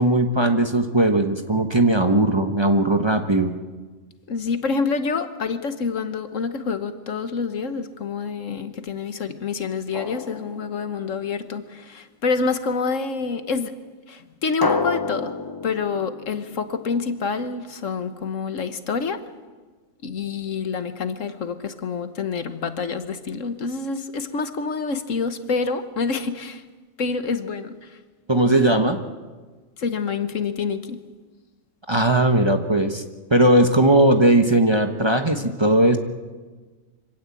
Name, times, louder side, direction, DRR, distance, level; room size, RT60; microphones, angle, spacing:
voice 1, 0.0-3.5 28.3-29.0 31.9-33.0 33.3-36.0, right 1 dB, 20° right, 5 dB, 1.2 m, -18 dB
voice 2, 4.3-13.7 14.1-15.4 15.6-19.2 20.0-26.6 27.0-28.0 29.8-31.0, left 5 dB, 70° left, 10 dB, 1.6 m, -27 dB
Drum, 9.9-11.5 14.6-17.3, left 3 dB, 20° left, 0.6 m, -30 dB
25.0 x 17.0 x 8.5 m, 1.3 s
omnidirectional pair, 1.4 m